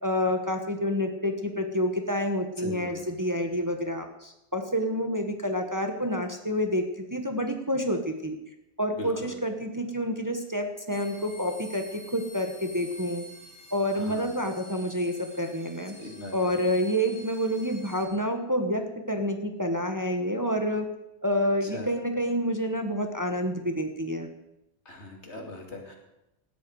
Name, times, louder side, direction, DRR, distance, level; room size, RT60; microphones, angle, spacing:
voice 1, 0.0-6.8 7.1-8.4 8.8-13.2 13.7-15.9 16.3-18.8 19.1-20.9 21.2-24.3, equal, 15° right, 4 dB, 1.3 m, -28 dB
voice 2, 2.6-3.0 8.9-9.3 14.0-14.2 16.0-16.4 21.6-21.9 24.8-26.0, left 1 dB, 75° left, 1 dB, 3.0 m, -40 dB
sound 1, 10.9-18.0, left 1 dB, 20° left, 3.6 m, -47 dB
18.0 x 13.0 x 4.8 m, 0.91 s
omnidirectional pair, 1.2 m